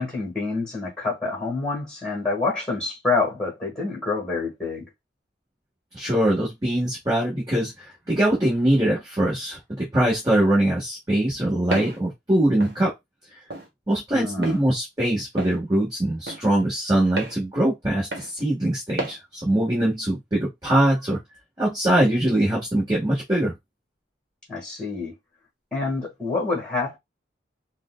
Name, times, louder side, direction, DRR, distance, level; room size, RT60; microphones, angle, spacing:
voice 1, 0.0-4.9 14.1-14.7 24.5-25.1 25.7-27.0, left 3 dB, 5° left, 1.5 m, -27 dB
voice 2, 5.9-7.7 8.1-12.9 13.9-21.2 21.6-23.5, right 1 dB, 20° right, 1.3 m, -22 dB
Walk footsteps, 11.7-12.0 12.6-12.8 13.5-13.7 14.4-14.6 15.4-15.6 16.3-16.4 17.2-17.4 18.1-18.3 19.0-19.2, right 2 dB, 55° right, 1.1 m, -30 dB
5.1 x 2.2 x 2.2 m
head